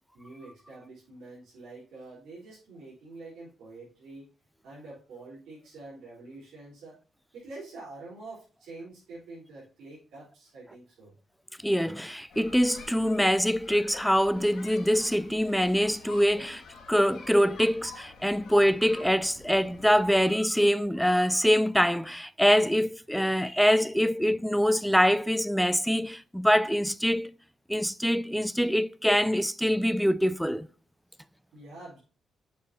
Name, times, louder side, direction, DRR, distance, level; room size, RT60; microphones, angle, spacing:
voice 1, 0.1-4.3 4.6-7.0 7.3-11.1 31.1-31.2 31.5-32.0, right 2 dB, 80° right, 3.7 m, -46 dB
voice 2, 11.6-16.6 16.9-27.3 27.7-30.7, equal, ahead, 0.3 m, -24 dB
sound 1, 12.3-20.3, left 4 dB, 65° left, 2.1 m, -49 dB
6.8 x 6.8 x 2.8 m
cardioid pair, 90°, 0 cm